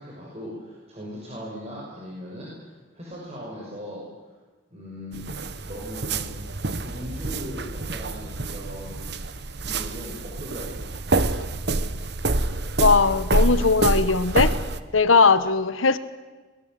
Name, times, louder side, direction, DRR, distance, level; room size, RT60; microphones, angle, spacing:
voice 1, 0.0-4.1 4.7-5.3 5.6-6.3 6.8-9.0 9.6-11.2, equal, 35° right, 6.0 m, -39 dB
sound 1, 5.1-14.8, right 2 dB, 55° right, 1.1 m, -27 dB
voice 2, 12.8-14.5 14.9-16.0, left 4 dB, 85° left, 1.1 m, -19 dB
23.5 x 21.0 x 7.7 m
head